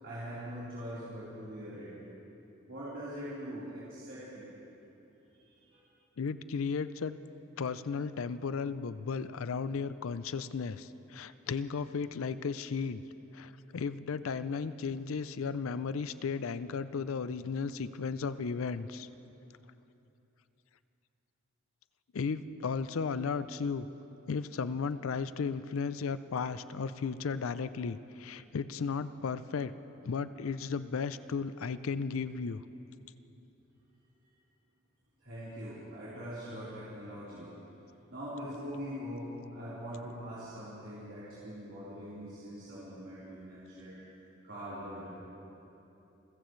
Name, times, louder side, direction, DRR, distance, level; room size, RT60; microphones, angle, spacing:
voice 1, 0.0-1.9 2.7-4.5 5.4-5.8 35.2-37.5 38.1-43.9 44.4-45.1, equal, 65° right, -12 dB, 4.0 m, -42 dB
voice 2, 6.2-7.1 7.6-13.0 13.3-19.1 22.1-23.9 24.3-29.7 30.0-32.6, left 5 dB, 80° left, 14 dB, 0.5 m, -35 dB
29.5 x 15.5 x 3.2 m, 2.9 s
head